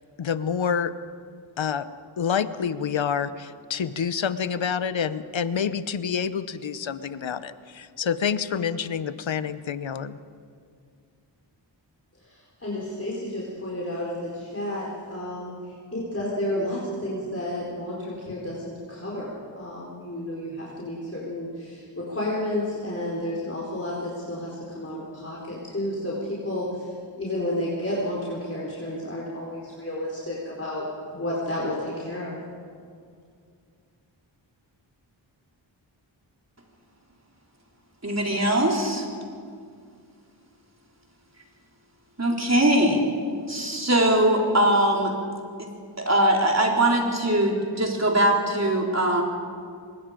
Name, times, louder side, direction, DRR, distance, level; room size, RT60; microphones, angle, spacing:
voice 1, 0.2-0.9 1.6-1.9 2.2-10.2, left 7 dB, 75° left, 14 dB, 0.9 m, -27 dB
voice 2, 12.2-15.5 15.9-26.9 27.1-32.4, left 1 dB, 30° left, -6 dB, 4.4 m, -31 dB
voice 3, 38.0-39.1 42.2-43.0 43.5-45.1 45.6-45.7 46.0-49.2, right 1 dB, 35° right, 0 dB, 4.1 m, -21 dB
24.5 x 21.0 x 5.1 m, 2.2 s
cardioid pair, 50°, 46 cm